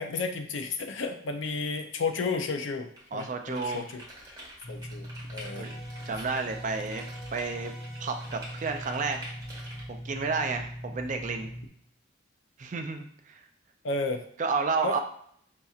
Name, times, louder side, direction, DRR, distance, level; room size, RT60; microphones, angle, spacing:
voice 1, 0.0-4.0 4.3-4.4 4.7-5.7 13.8-14.2 14.8-15.0, left 4 dB, 65° left, 6 dB, 0.5 m, -32 dB
sound 1, 3.0-9.8, right 1 dB, 15° right, 1.1 m, -46 dB
voice 2, 3.1-3.9 5.5-5.8 6.1-7.0 7.3-7.7 8.0-9.2 9.9-11.5 12.6-13.5 14.4-15.0, right 4 dB, 40° right, 5 dB, 0.4 m, -31 dB
sound 2, 4.6-11.7, equal, 30° left, 0.8 m, -41 dB
sound 3, 5.4-10.6, right 1 dB, ahead, 0.7 m, -52 dB
5.3 x 2.8 x 2.3 m, 0.65 s
head